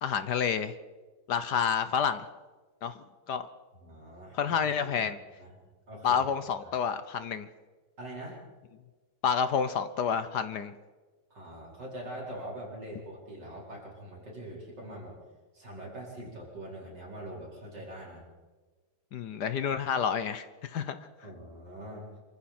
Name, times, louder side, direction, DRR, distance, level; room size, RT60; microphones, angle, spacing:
voice 1, 0.0-0.8 1.3-2.2 2.8-3.0 3.3-3.5 4.3-5.2 6.0-7.5 9.2-10.7 19.1-21.0, left 7 dB, 60° left, 12 dB, 1.2 m, -29 dB
voice 2, 3.8-5.1 5.4-5.6 5.9-6.2 6.6-6.7 8.0-8.4 11.3-15.2 15.5-18.3 21.2-22.1, right 1 dB, 50° right, -4 dB, 5.3 m, -43 dB
26.5 x 24.0 x 4.4 m, 1.3 s
omnidirectional pair, 2.3 m